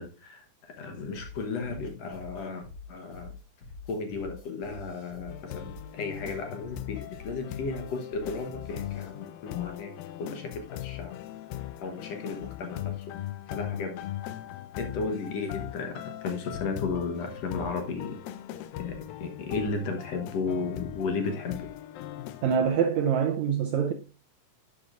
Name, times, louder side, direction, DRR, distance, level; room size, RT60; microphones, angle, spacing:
voice 1, 0.0-3.3 3.9-9.9 10.2-11.2 11.8-13.0 13.5-14.0 14.8-18.2 18.8-21.6, left 4 dB, 60° left, 1.9 m, -34 dB
sound 1, 1.1-9.1, left 4 dB, 40° left, 1.5 m, -46 dB
sound 2, 5.3-22.7, left 13 dB, 85° left, 2.4 m, -39 dB
voice 2, 22.4-23.9, right 7 dB, 85° right, 1.6 m, -25 dB
11.0 x 7.8 x 2.5 m
omnidirectional pair, 4.1 m